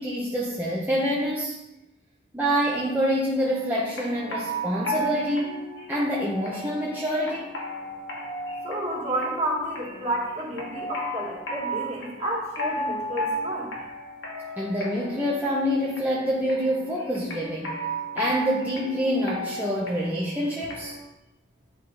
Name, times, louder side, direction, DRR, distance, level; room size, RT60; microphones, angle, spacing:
voice 1, 0.0-1.6 2.3-7.5 14.6-17.7 18.1-21.0, equal, 10° right, -5 dB, 0.8 m, -26 dB
sound 1, 3.3-21.0, equal, 80° left, 1.6 m, -35 dB
voice 2, 8.6-13.7, right 1 dB, 35° right, -4 dB, 2.1 m, -30 dB
9.9 x 4.0 x 4.0 m, 0.94 s
head